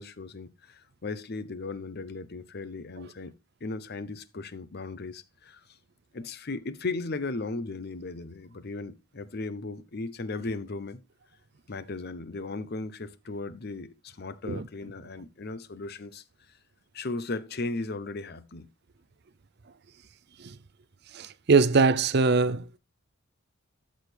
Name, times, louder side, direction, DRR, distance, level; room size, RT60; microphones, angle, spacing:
voice 1, 0.0-3.3 3.6-5.6 6.1-11.0 11.7-16.2 16.9-18.7, left 3 dB, 50° left, 0.8 m, -36 dB
voice 2, 21.1-22.8, right 4 dB, 50° right, 0.6 m, -22 dB
12.5 x 6.2 x 3.4 m
head